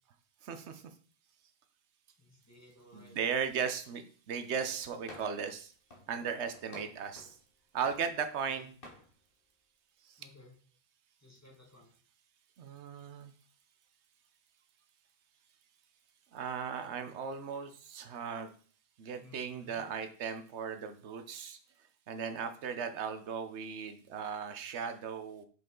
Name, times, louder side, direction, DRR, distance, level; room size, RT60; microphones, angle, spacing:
voice 1, 0.4-0.8 2.9-5.7 6.1-7.4 7.7-8.7 10.1-10.2 12.6-13.3 16.3-18.5 19.0-21.6 22.1-25.5, right 6 dB, 85° right, 8 dB, 1.0 m, -37 dB
voice 2, 2.2-3.2 8.4-8.6 10.2-10.5 11.2-12.0 19.2-19.8, left 2 dB, 15° left, -2 dB, 1.9 m, -57 dB
sound 1, 5.1-5.5 5.9-7.4 7.8-8.5 8.8-9.1, left 1 dB, 55° left, 1.6 m, -51 dB
6.1 x 5.4 x 3.7 m, 0.42 s
omnidirectional pair, 1.1 m